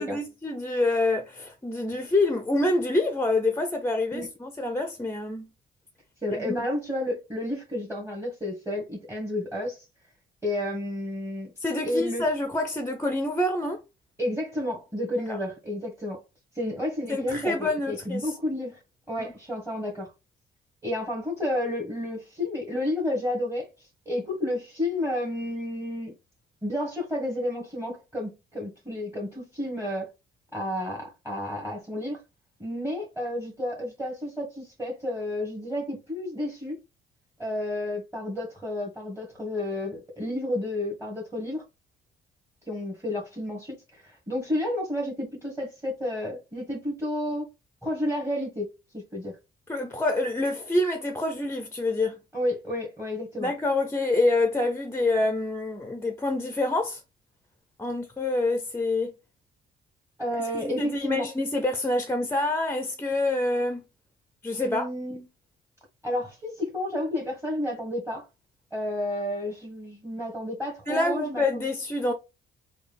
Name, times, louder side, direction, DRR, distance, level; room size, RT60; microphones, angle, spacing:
voice 1, 0.0-5.5 6.3-6.7 11.6-13.8 15.3-15.4 17.1-18.3 49.7-52.2 53.4-57.0 57.8-59.1 60.5-63.8 64.4-64.9 70.9-72.1, left 2 dB, 10° left, 0.5 m, -26 dB
voice 2, 6.2-9.9 10.4-11.5 11.8-12.2 14.2-16.2 16.5-18.8 19.1-20.1 20.8-26.1 26.6-30.1 30.5-32.2 32.6-36.8 37.4-41.6 42.7-47.5 47.8-49.4 52.3-53.5 60.2-61.3 64.6-65.2 66.0-68.3 68.7-71.6, left 1 dB, 10° right, 1.3 m, -31 dB
3.5 x 2.3 x 3.4 m
cardioid pair, 90°, 20 cm